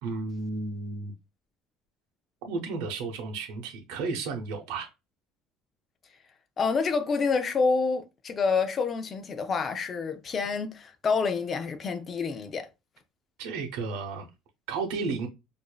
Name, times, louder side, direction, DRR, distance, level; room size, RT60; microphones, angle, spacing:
voice 1, 0.0-1.1 2.4-4.9 13.4-14.3 14.7-15.3, right 4 dB, 90° right, 0.8 m, -33 dB
voice 2, 6.6-12.7, left 4 dB, 25° left, 0.4 m, -28 dB
4.8 x 2.6 x 2.2 m
cardioid pair, 170°, 0 cm